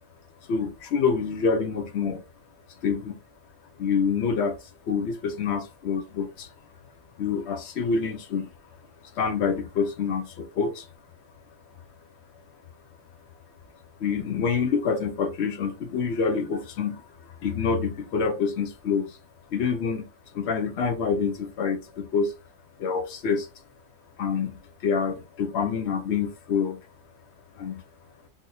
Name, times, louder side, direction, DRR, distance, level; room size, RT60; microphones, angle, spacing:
voice 1, 0.5-2.2 2.8-3.2 3.8-4.6 4.9-6.5 7.2-8.5 9.2-10.9 14.0-17.0 17.4-19.2 19.5-20.1 20.3-22.3 22.8-23.5 24.2-26.8 27.6-27.8, left 5 dB, 60° left, 0.9 m, -26 dB
3.9 x 2.7 x 2.6 m
omnidirectional pair, 1.3 m